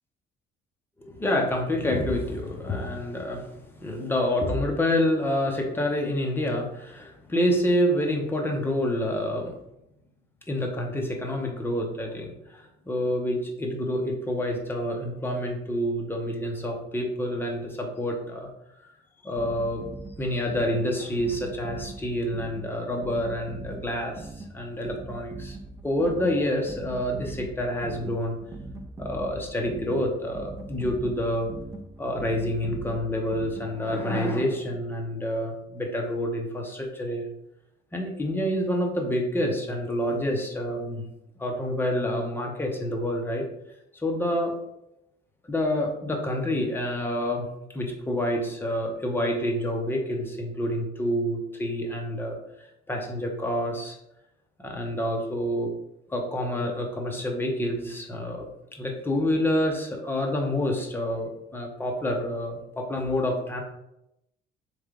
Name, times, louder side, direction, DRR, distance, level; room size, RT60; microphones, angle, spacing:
voice 1, 1.0-9.6 10.5-18.5 19.2-19.8 20.2-25.6 25.8-28.4 29.0-31.5 32.0-37.3 37.9-41.1 41.4-43.5 43.9-44.5 45.4-47.5 47.7-52.4 52.9-54.0 54.6-55.7 56.1-58.5 58.8-63.6, left 1 dB, 10° left, 1 dB, 0.7 m, -28 dB
sound 1, 19.4-34.0, right 2 dB, 15° right, 0.3 m, -41 dB
3.7 x 3.2 x 3.6 m, 0.84 s
cardioid pair, 145°, 19 cm